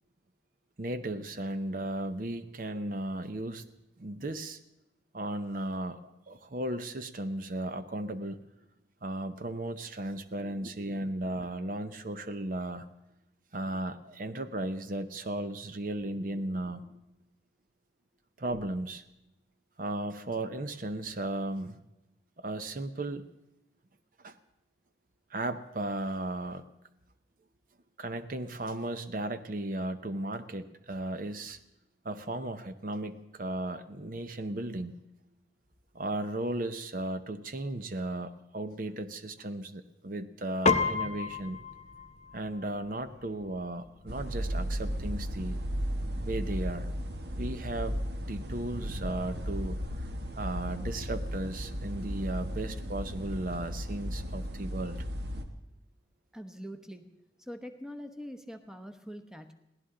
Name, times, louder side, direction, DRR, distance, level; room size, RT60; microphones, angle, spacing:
voice 1, 0.8-3.6 4.0-4.6 5.1-8.4 9.0-12.9 13.5-17.0 18.4-19.0 19.8-21.8 22.4-23.3 24.2-24.4 25.3-26.6 28.0-31.6 32.0-35.0 35.9-41.6 42.3-45.6 46.2-46.9 47.4-50.1 50.4-55.0, right 1 dB, 45° right, 10 dB, 0.7 m, -35 dB
Piano, 40.7-50.3, left 4 dB, 35° left, 0.7 m, -36 dB
sound 1, 44.1-55.4, equal, 60° right, 1.3 m, -35 dB
voice 2, 56.3-57.1 57.4-59.5, equal, 5° right, 7 dB, 0.9 m, -43 dB
22.5 x 16.5 x 3.8 m, 0.87 s
head